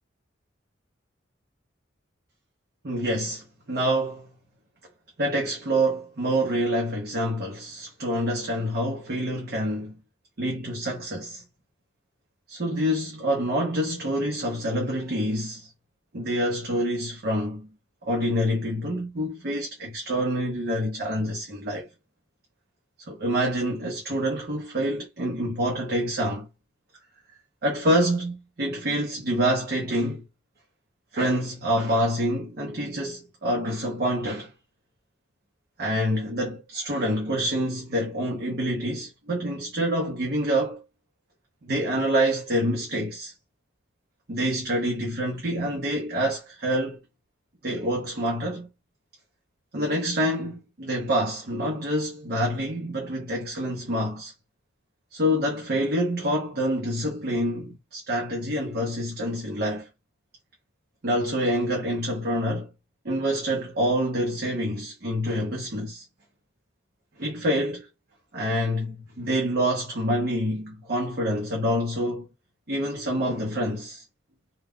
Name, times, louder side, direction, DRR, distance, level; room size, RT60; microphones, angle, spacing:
voice 1, 2.8-4.3 5.2-10.0 10.4-11.4 12.5-15.7 16.1-17.7 18.0-21.9 23.1-26.5 27.6-30.3 31.1-34.5 35.8-40.8 41.6-43.3 44.3-47.0 47.6-48.7 49.7-54.3 55.1-59.9 61.0-62.7 63.0-66.0 67.2-67.9 68.3-72.3 72.7-74.0, equal, 55° right, 0.8 m, -27 dB
2.3 x 2.3 x 3.5 m
head